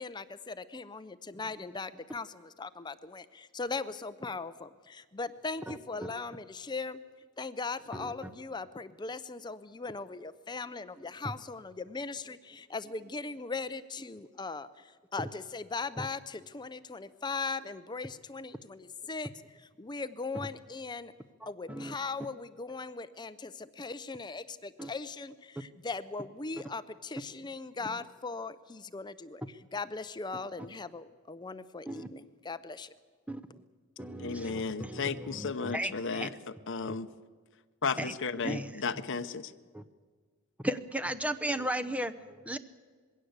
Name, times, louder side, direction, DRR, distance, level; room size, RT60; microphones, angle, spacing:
voice 1, 0.0-7.0 7.4-21.1 21.5-32.9, left 4 dB, 20° left, 0.5 m, -39 dB
voice 2, 5.7-6.1 7.9-8.3 16.0-16.1 21.4-21.9 24.8-24.9 27.3-27.4 31.9-32.1 33.3-33.4 34.0-36.3 36.9-37.0 38.0-38.1 38.4-38.8 39.7-39.8 40.6-42.6, right 1 dB, 5° right, 0.8 m, -36 dB
voice 3, 34.2-36.3 36.7-37.1 37.8-39.5, left 4 dB, 55° left, 0.9 m, -34 dB
21.5 x 16.5 x 8.0 m
head